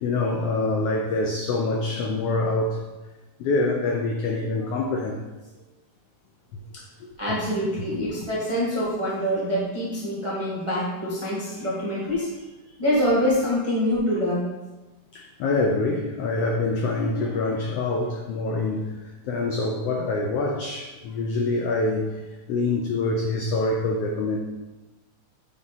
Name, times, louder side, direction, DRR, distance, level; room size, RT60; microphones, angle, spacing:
voice 1, 0.0-2.8 3.4-5.2 15.1-18.8 19.3-22.1 22.5-24.4, left 2 dB, 90° left, 1 dB, 1.3 m, -25 dB
voice 2, 7.2-12.3 12.8-14.5, equal, 50° right, -7 dB, 0.3 m, -25 dB
9.5 x 3.6 x 4.0 m, 1.1 s
omnidirectional pair, 3.5 m